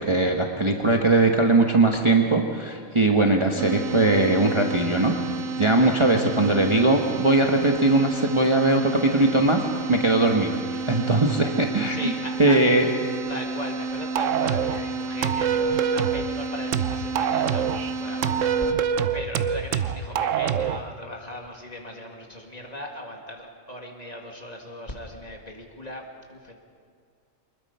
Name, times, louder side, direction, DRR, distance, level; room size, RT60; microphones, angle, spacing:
voice 1, 0.1-5.1 5.6-10.6 10.9-12.1 12.4-12.9, right 2 dB, 25° right, 2 dB, 1.1 m, -20 dB
sound 1, 3.6-18.7, right 3 dB, 85° right, 1.4 m, -31 dB
voice 2, 10.7-11.1 11.8-12.7 13.3-26.5, left 1 dB, 30° left, 1 dB, 2.3 m, -38 dB
sound 2, 14.2-14.8 15.2-16.3 16.7-17.8 18.2-20.8, right 8 dB, 70° right, 1.1 m, -24 dB
24.0 x 20.5 x 5.5 m, 2.1 s
omnidirectional pair, 1.4 m